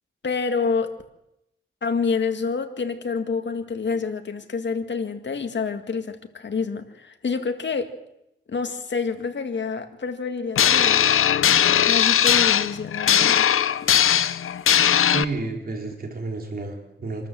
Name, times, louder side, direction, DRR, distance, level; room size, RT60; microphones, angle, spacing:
voice 1, 0.2-0.9 1.8-7.9 8.5-11.1 11.9-13.5, left 5 dB, 60° left, 6 dB, 2.0 m, -27 dB
sound 1, 10.6-15.2, left 9 dB, 85° left, 0.7 m, -19 dB
voice 2, 15.1-17.3, right 3 dB, 45° right, 2 dB, 3.9 m, -30 dB
26.0 x 13.5 x 7.7 m, 0.85 s
wide cardioid pair, 115°, 21 cm